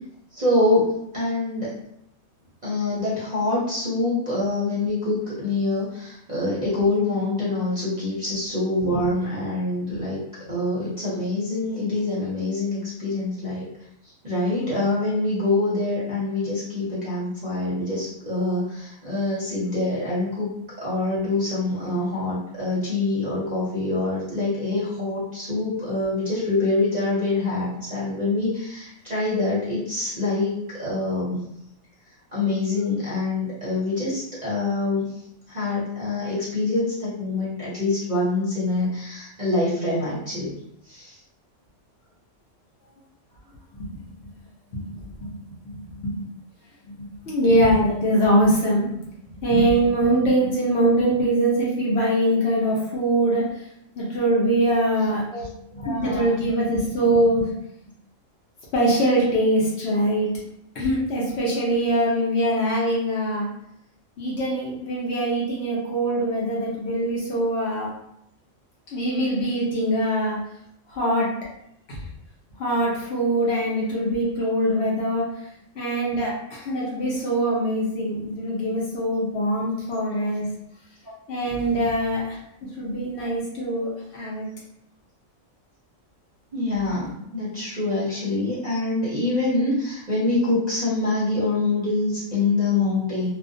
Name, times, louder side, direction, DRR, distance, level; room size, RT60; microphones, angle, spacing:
voice 1, 0.3-0.9 1.1-1.7 2.6-10.2 10.5-13.7 14.2-20.5 20.8-31.4 32.3-35.2 35.5-40.5 40.9-41.2 55.3-55.5 55.8-56.2 79.8-79.9 81.0-81.1 86.5-93.3, left 2 dB, 40° right, -8 dB, 0.7 m, -25 dB
voice 2, 44.7-45.3 45.6-46.2 46.9-53.6 54.0-57.5 58.7-60.3 60.7-63.5 64.2-67.9 68.9-70.4 70.9-71.3 71.9-72.0 72.6-75.2 75.7-80.4 81.3-84.5, right 1 dB, 60° left, -5 dB, 0.9 m, -23 dB
2.4 x 2.2 x 2.5 m, 0.77 s
omnidirectional pair, 1.4 m